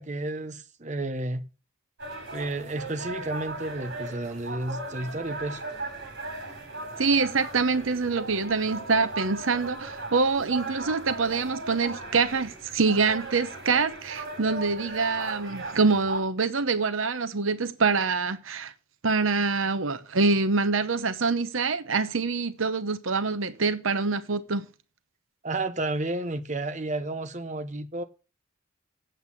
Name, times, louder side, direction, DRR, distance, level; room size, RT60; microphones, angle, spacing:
voice 1, 0.0-1.5 2.3-5.6 25.4-28.0, right 2 dB, 35° right, 1.0 m, -31 dB
sound 1, 2.0-16.2, right 2 dB, 55° right, 5.0 m, -37 dB
voice 2, 7.0-18.7 19.0-24.7, right 4 dB, 80° right, 0.9 m, -25 dB
8.3 x 8.0 x 7.1 m
head